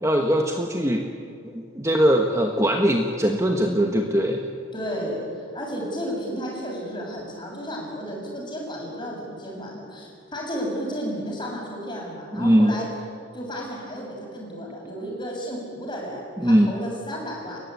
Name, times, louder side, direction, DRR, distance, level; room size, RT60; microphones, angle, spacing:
voice 1, 0.0-1.0 1.4-4.5 12.3-12.7 16.4-16.7, equal, 15° right, 3 dB, 1.3 m, -21 dB
voice 2, 4.7-12.9 13.3-17.6, equal, 25° left, -2 dB, 7.2 m, -33 dB
29.5 x 15.5 x 9.6 m, 2.3 s
head